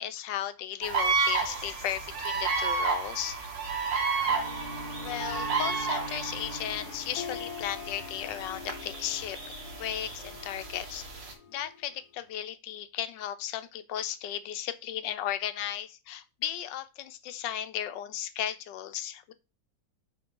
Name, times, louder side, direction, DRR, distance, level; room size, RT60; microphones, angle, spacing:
voice 1, 0.0-3.4 5.0-9.4 9.8-11.1 11.5-19.3, left 11 dB, 85° left, 11 dB, 1.3 m, -35 dB
sound 1, 0.8-11.3, right 4 dB, 85° right, 2.1 m, -32 dB
Harp, 4.2-12.0, left 8 dB, 65° left, 1.3 m, -45 dB
Bowed string instrument, 4.2-7.2, equal, 30° right, 3.2 m, -42 dB
5.9 x 4.3 x 5.3 m, 0.29 s
omnidirectional pair, 1.9 m